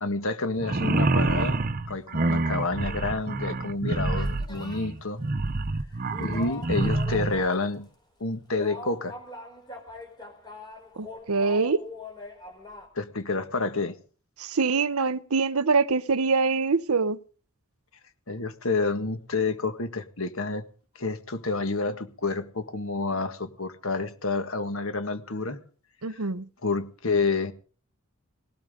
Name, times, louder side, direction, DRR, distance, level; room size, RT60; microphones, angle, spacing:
voice 1, 0.0-1.6 1.9-5.2 6.2-7.9 8.2-9.1 12.9-14.0 18.3-20.7 21.0-25.6 26.1-26.2 26.6-27.5, left 3 dB, 65° left, 1.7 m, -29 dB
sound 1, 0.6-7.4, right 2 dB, 40° right, 0.8 m, -27 dB
sound 2, 4.2-4.9 6.1-7.8 8.5-12.9, left 2 dB, 20° left, 4.0 m, -42 dB
voice 2, 11.0-11.8 14.4-17.2 26.0-26.5, right 4 dB, 85° right, 0.9 m, -24 dB
19.0 x 18.0 x 3.7 m
head